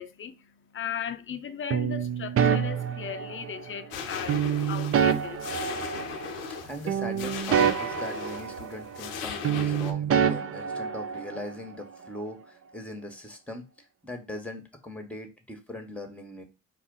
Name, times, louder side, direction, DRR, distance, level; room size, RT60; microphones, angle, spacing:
voice 1, 0.0-5.4, left 8 dB, 35° left, 0.5 m, -37 dB
sound 1, 1.7-3.7 4.3-6.6 6.9-9.2 9.4-11.5, right 8 dB, 40° right, 0.5 m, -27 dB
sound 2, 3.9-9.9, left 6 dB, 85° left, 0.6 m, -37 dB
voice 2, 6.3-13.7 14.0-16.4, left 1 dB, 5° left, 1.2 m, -40 dB
4.3 x 2.4 x 3.8 m
hypercardioid pair, 50°, 38 cm